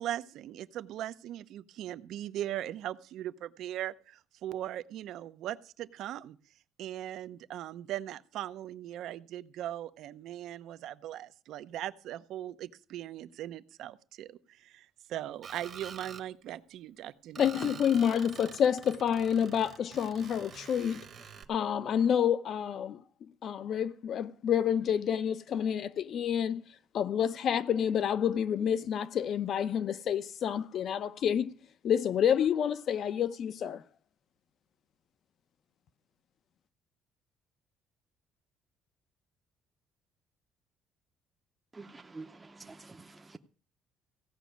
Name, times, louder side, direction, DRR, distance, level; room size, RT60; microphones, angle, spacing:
voice 1, 0.0-6.4 6.8-17.8, right 12 dB, 60° right, 0.8 m, -39 dB
Screech, 15.4-16.3 17.4-21.4, right 7 dB, 30° right, 1.1 m, -48 dB
voice 2, 17.4-21.1 21.5-23.0 23.4-26.6 26.9-31.5 31.8-33.8, left 8 dB, 45° left, 0.7 m, -28 dB
voice 3, 41.7-43.4, right 3 dB, 10° right, 0.7 m, -48 dB
16.0 x 6.2 x 9.3 m
cardioid pair, 170°, 0 cm